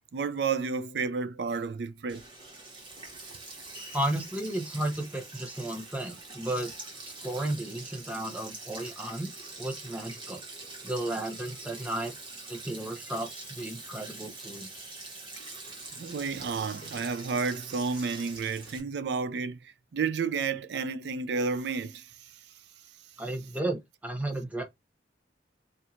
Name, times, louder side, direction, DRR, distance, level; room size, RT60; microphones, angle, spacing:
voice 1, 0.1-2.2 15.4-15.5 16.0-22.3, right 5 dB, 65° right, 0.4 m, -31 dB
Sink (filling or washing), 2.1-18.8, right 3 dB, 25° right, 1.3 m, -44 dB
voice 2, 3.9-6.7 7.2-9.3 9.6-10.4 10.8-12.2 12.5-14.7 23.2-24.6, right 1 dB, 10° right, 0.9 m, -33 dB
4.3 x 2.7 x 2.4 m
head